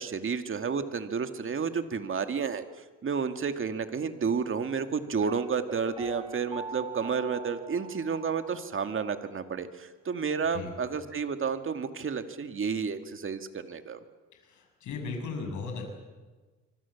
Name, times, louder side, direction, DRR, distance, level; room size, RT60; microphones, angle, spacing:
voice 1, 0.0-2.6 3.0-14.0, right 6 dB, 45° right, 8 dB, 2.2 m, -31 dB
Piano, 5.2-8.9 9.2-9.3, right 3 dB, 15° right, 5.9 m, -42 dB
voice 2, 14.4-15.9, left 4 dB, 75° left, 3 dB, 6.8 m, -36 dB
26.5 x 24.0 x 7.3 m, 1.3 s
cardioid pair, 90°, 30 cm